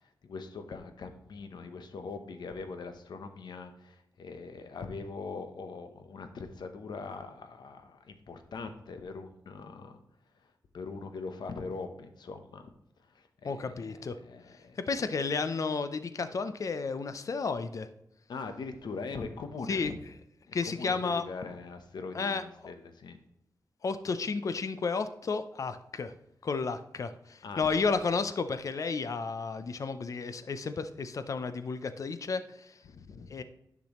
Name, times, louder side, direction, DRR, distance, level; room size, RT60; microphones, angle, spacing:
voice 1, 0.2-10.0 10.7-12.7 13.0-14.8 18.3-20.0 20.5-23.2 27.4-27.7 32.9-33.3, left 4 dB, 75° left, 8 dB, 0.9 m, -42 dB
voice 2, 13.4-14.2 14.9-17.9 19.7-19.9 20.5-21.3 22.1-22.7 23.8-26.1 26.4-32.8 33.3-33.4, left 4 dB, 50° left, 11 dB, 0.5 m, -32 dB
10.5 x 6.1 x 3.0 m, 0.81 s
wide cardioid pair, 100°, 7 cm